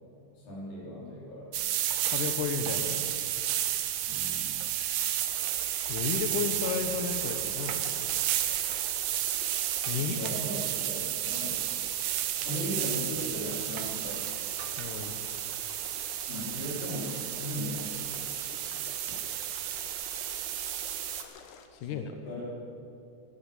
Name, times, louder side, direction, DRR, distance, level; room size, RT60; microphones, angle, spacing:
voice 1, 0.4-1.5 4.1-4.6 10.0-11.6 12.4-14.2 16.3-18.3 21.8-22.5, left 1 dB, 55° left, -6 dB, 6.0 m, -38 dB
sound 1, 1.5-21.2, right 12 dB, 80° right, 2.7 m, -32 dB
voice 2, 2.1-3.0 5.9-7.8 9.9-10.2 14.8-15.2 21.7-22.2, left 6 dB, 75° left, 5 dB, 1.9 m, -33 dB
sound 2, 5.2-21.7, left 6 dB, 90° left, 1.6 m, -50 dB
16.5 x 12.0 x 7.1 m, 2.5 s
omnidirectional pair, 4.9 m